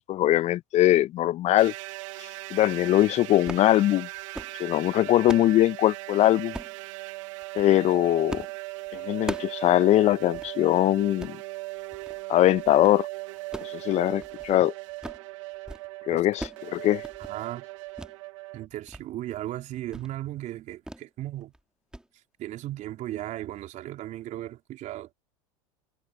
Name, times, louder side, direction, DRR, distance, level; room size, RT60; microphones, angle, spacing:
voice 1, 0.0-1.7 2.5-4.1 4.6-6.5 7.6-8.5 8.9-11.4 12.3-13.1 13.6-14.7 16.1-17.0, left 14 dB, 40° left, 0.7 m, -22 dB
sound 1, 1.6-18.7, right 22 dB, 70° right, 0.9 m, -39 dB
sound 2, 3.4-3.7 4.1-4.6 5.0-5.5 6.5-6.8 7.4-7.7 8.3-8.6 8.9-9.6 9.9-10.0 10.3-10.5 11.0-11.4 11.9-12.2 12.5-13.0 13.4-14.6 14.9-15.3 15.5-15.9 16.1-16.7 16.9-17.3 18.0-18.1 18.5-19.0 19.4-19.5 19.9-20.1 20.9-21.1 21.4-21.6 21.9-22.1, right 1 dB, 5° right, 1.7 m, -39 dB
voice 2, 17.2-17.7 18.5-21.5 22.4-25.1, right 14 dB, 45° right, 3.8 m, -36 dB
hypercardioid pair, 90°, 17 cm